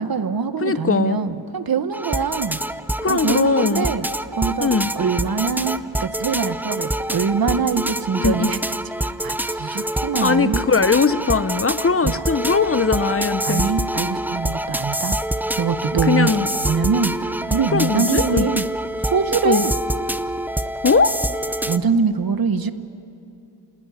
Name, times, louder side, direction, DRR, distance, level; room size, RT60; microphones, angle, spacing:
voice 1, 0.0-2.6 3.1-4.1 4.4-4.7 4.9-8.6 9.0-10.6 12.0-12.2 13.4-15.2 15.6-18.7 19.1-19.7 21.7-22.7, right 5 dB, 55° right, 12 dB, 1.1 m, -23 dB
voice 2, 0.6-1.2 3.0-3.9 4.6-4.9 8.2-8.5 9.7-9.9 10.2-13.6 16.0-16.5 17.7-18.5 19.4-19.6 20.8-21.2, left 5 dB, 35° left, 13 dB, 0.7 m, -20 dB
sound 1, 1.9-21.8, right 1 dB, 5° right, 0.6 m, -26 dB
28.0 x 20.0 x 9.4 m, 2.8 s
wide cardioid pair, 85°, 41 cm